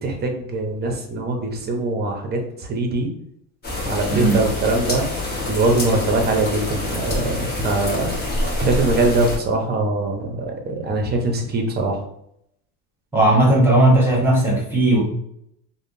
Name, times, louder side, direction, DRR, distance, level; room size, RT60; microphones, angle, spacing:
voice 1, 0.0-3.1 3.8-5.1 5.5-8.1 8.6-12.0, right 2 dB, 25° right, 3 dB, 0.7 m, -22 dB
sound 1, 3.6-9.4, left 2 dB, 25° left, 0.9 m, -26 dB
voice 2, 13.1-15.0, right 1 dB, 5° right, -4 dB, 1.1 m, -16 dB
3.4 x 2.2 x 2.6 m, 0.72 s
cardioid pair, 125°, 40 cm